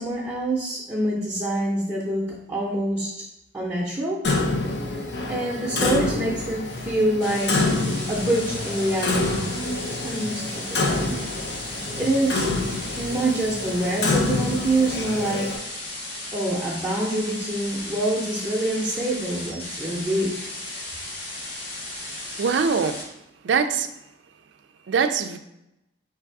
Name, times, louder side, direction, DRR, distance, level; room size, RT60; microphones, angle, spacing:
voice 1, 0.0-3.1 3.5-4.2 4.9-7.8 8.1-9.4 10.0-11.1 12.0-12.5 13.0-15.7 16.3-20.3, right 1 dB, 15° right, -6 dB, 0.7 m, -26 dB
Clock, 4.2-15.6, left 2 dB, 70° left, 0.6 m, -27 dB
sound 1, 7.2-23.0, left 2 dB, 85° left, 1.6 m, -35 dB
voice 2, 22.4-23.0 23.4-23.9 24.9-25.4, right 6 dB, 90° right, 8 dB, 0.4 m, -22 dB
3.4 x 3.3 x 4.6 m, 0.85 s
head